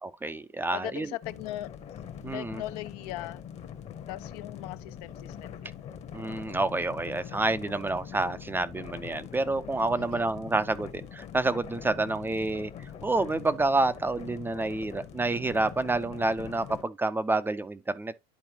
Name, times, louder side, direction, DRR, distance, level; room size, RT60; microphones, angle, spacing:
voice 1, 0.0-1.2 2.2-2.6 6.1-18.1, right 2 dB, 10° right, 0.4 m, -29 dB
voice 2, 0.7-1.7 2.3-3.4 4.1-5.8 9.9-10.3, left 16 dB, 75° left, 0.7 m, -39 dB
sound 1, 1.2-16.8, left 8 dB, 35° left, 0.9 m, -43 dB
11.0 x 4.3 x 2.8 m
supercardioid pair, 135°, 20 cm